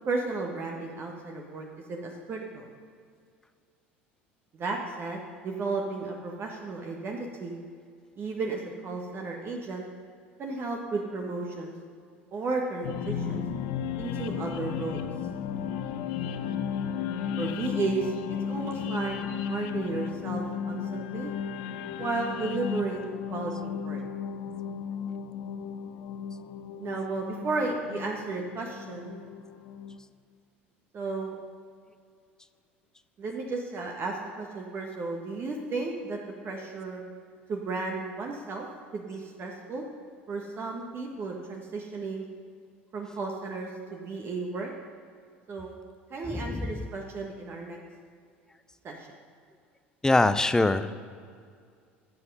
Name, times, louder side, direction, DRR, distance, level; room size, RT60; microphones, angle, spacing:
voice 1, 0.0-2.7 4.5-7.6 8.2-9.9 10.4-11.7 12.3-13.4 14.0-15.0 17.4-18.1 18.5-19.2 19.5-21.3 22.0-24.0 26.8-29.2 30.9-31.3 33.2-36.2 36.4-37.0 37.5-38.7 38.9-39.8 40.3-42.2 42.9-44.7 45.5-45.7 46.1-47.8 48.8-49.1, right 3 dB, 35° right, 1 dB, 1.4 m, -33 dB
sound 1, 12.8-30.0, left 7 dB, 60° left, 0.7 m, -34 dB
voice 2, 50.0-50.9, left 2 dB, 10° left, 12 dB, 0.6 m, -23 dB
13.0 x 7.8 x 5.5 m, 2.2 s
figure-of-eight pair, 70°, 6 cm